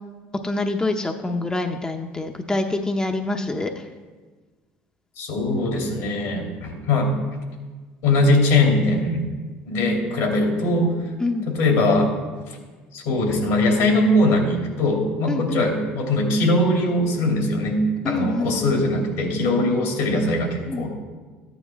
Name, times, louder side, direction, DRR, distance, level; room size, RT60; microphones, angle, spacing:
voice 1, 0.4-3.8 11.2-11.5 15.3-15.6 18.0-18.6 20.7-20.9, left 2 dB, 15° left, 4 dB, 0.8 m, -26 dB
voice 2, 5.2-7.1 8.0-9.2 9.7-10.9 11.5-12.1 12.5-12.6 12.9-20.9, left 1 dB, 75° left, 1 dB, 2.8 m, -21 dB
14.0 x 9.3 x 3.6 m, 1.4 s
supercardioid pair, 80°, 5 cm